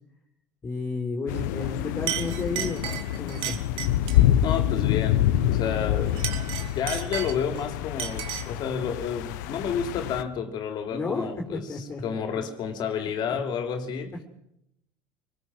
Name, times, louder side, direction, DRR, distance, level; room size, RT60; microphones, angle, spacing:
voice 1, 0.6-2.9 3.2-3.6 10.9-12.4 13.3-13.4, left 3 dB, 25° left, 4.2 m, -32 dB
sound 1, 1.3-10.2, left 12 dB, 85° left, 1.3 m, -26 dB
Chink clink, 1.6-1.8 2.1-4.3 6.1-7.6 8.0-8.6, right 11 dB, 65° right, 3.5 m, -34 dB
voice 2, 4.4-6.2 6.7-11.7 12.0-14.1, left 7 dB, 50° left, 3.6 m, -30 dB
27.5 x 20.0 x 6.5 m
supercardioid pair, 110°, 9 cm